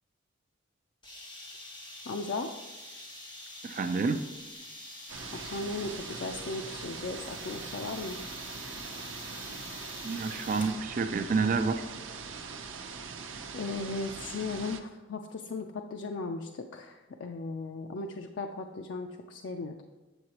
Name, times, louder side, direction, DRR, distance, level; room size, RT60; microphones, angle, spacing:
sound 1, 1.0-10.8, left 1 dB, 25° left, 1.2 m, -46 dB
voice 1, 2.1-2.5 5.3-8.2 13.5-19.8, left 3 dB, 70° left, 4 dB, 0.4 m, -37 dB
voice 2, 3.6-4.2 10.0-11.8, right 4 dB, 40° right, 8 dB, 0.4 m, -29 dB
sound 2, 5.1-14.8, right 5 dB, 90° right, 0.7 m, -42 dB
7.9 x 7.5 x 2.9 m, 1.2 s
head